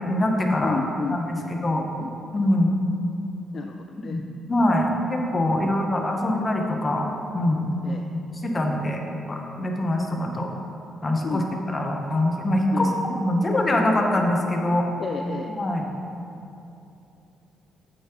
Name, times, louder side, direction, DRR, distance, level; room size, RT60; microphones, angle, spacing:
voice 1, 0.0-0.8 1.1-1.4 1.6-1.8 2.3-2.7 4.1-4.2 4.5-7.1 7.3-7.7 8.1-9.0 9.3-10.5 11.0-11.4 11.7-12.9 13.1-14.9 15.6-15.9, left 1 dB, 30° left, 2 dB, 0.9 m, -23 dB
voice 2, 0.6-2.2 3.5-4.2 5.6-5.7 7.8-8.1 11.2-11.6 12.7-13.2 15.0-15.5, left 4 dB, 45° left, 4 dB, 0.3 m, -33 dB
8.3 x 6.9 x 3.0 m, 2.8 s
cardioid pair, 90°, 0 cm